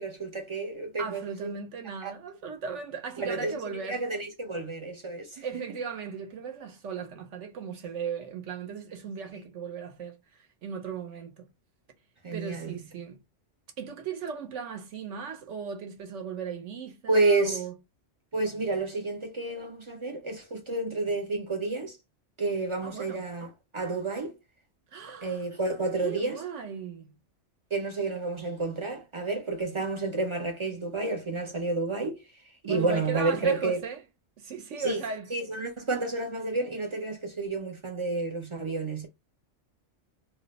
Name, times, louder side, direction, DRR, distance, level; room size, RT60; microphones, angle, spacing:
voice 1, 0.0-1.5 2.0-2.1 3.2-3.6 3.9-5.7 12.2-12.7 17.1-17.6 18.3-22.0 22.4-24.3 25.2-26.4 27.7-32.2 32.6-33.8 34.8-35.0 35.3-39.1, right 3 dB, 50° right, 0.3 m, -30 dB
voice 2, 1.0-4.0 5.4-10.2 10.6-11.5 12.3-13.2 13.8-17.7 22.8-23.2 24.9-25.4 26.0-27.1 32.6-34.0 34.4-35.3, right 6 dB, 75° right, 1.0 m, -37 dB
2.5 x 2.1 x 3.9 m
omnidirectional pair, 1.3 m